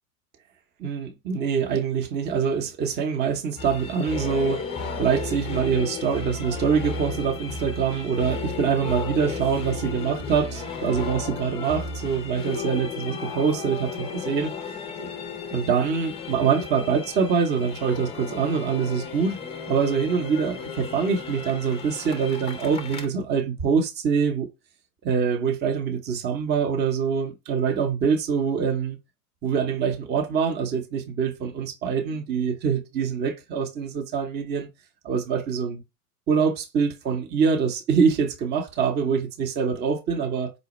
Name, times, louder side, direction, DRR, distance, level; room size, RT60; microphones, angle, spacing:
voice 1, 0.8-4.6 5.0-14.5 15.0-15.1 15.5-19.4 19.7-24.5 25.0-29.0 29.4-34.7 35.0-35.8 36.3-40.5, right 6 dB, 20° right, 0.7 m, -24 dB
sound 1, 3.6-23.1, left 4 dB, 15° left, 0.5 m, -34 dB
5.1 x 2.1 x 3.0 m
hypercardioid pair, 100°, 46 cm